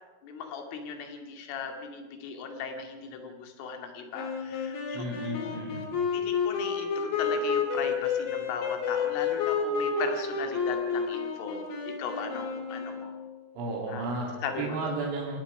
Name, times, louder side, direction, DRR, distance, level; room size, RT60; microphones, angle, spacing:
voice 1, 0.2-5.6 6.1-13.1 13.9-14.1 14.4-14.8, left 6 dB, 75° left, 4 dB, 4.6 m, -38 dB
sound 1, 4.1-13.3, left 5 dB, 50° left, 3.9 m, -30 dB
voice 2, 4.9-5.9 13.6-14.3 14.6-15.4, right 2 dB, 70° right, -3 dB, 5.2 m, -33 dB
27.5 x 18.0 x 5.9 m, 1.3 s
omnidirectional pair, 5.9 m